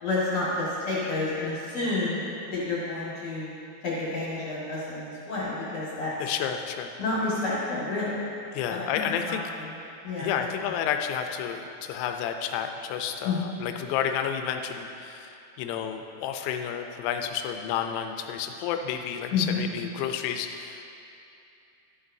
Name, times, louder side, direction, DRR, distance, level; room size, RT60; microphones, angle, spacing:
voice 1, 0.0-2.2 2.5-3.5 3.8-6.1 7.0-8.3 8.7-8.8 9.3-9.7 10.0-10.5 13.2-13.5 19.3-19.7, left 3 dB, 50° left, -9 dB, 2.1 m, -29 dB
voice 2, 6.2-6.9 8.5-9.4 10.2-20.8, left 8 dB, 85° left, 5 dB, 2.9 m, -31 dB
12.5 x 11.0 x 2.7 m, 2.7 s
omnidirectional pair, 5.3 m